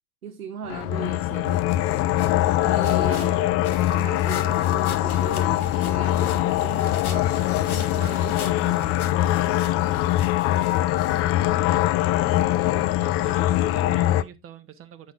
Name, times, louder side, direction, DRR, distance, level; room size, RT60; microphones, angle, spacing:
voice 1, 0.2-1.7 2.6-3.3 3.9-9.0, right 6 dB, 85° right, 0.8 m, -38 dB
sound 1, 0.7-14.2, left 14 dB, 35° left, 0.4 m, -22 dB
sound 2, 1.7-11.7, left 4 dB, 90° left, 1.1 m, -42 dB
voice 2, 3.1-3.6 11.1-11.9 12.6-15.1, right 8 dB, 30° right, 1.0 m, -44 dB
8.6 x 6.2 x 2.5 m
figure-of-eight pair, 75°, 42 cm